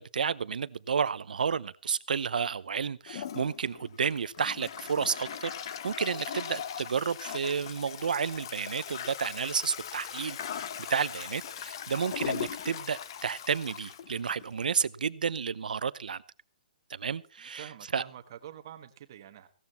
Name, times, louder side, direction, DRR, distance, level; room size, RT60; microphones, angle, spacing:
voice 1, 0.0-16.2 16.9-17.7 17.9-18.0, right 6 dB, 75° right, 0.7 m, -31 dB
Toilet flush, 3.1-14.9, left 9 dB, 30° left, 0.7 m, -39 dB
voice 2, 17.4-19.5, right 10 dB, 30° right, 1.2 m, -47 dB
16.5 x 13.0 x 4.2 m
hypercardioid pair, 180°, 5 cm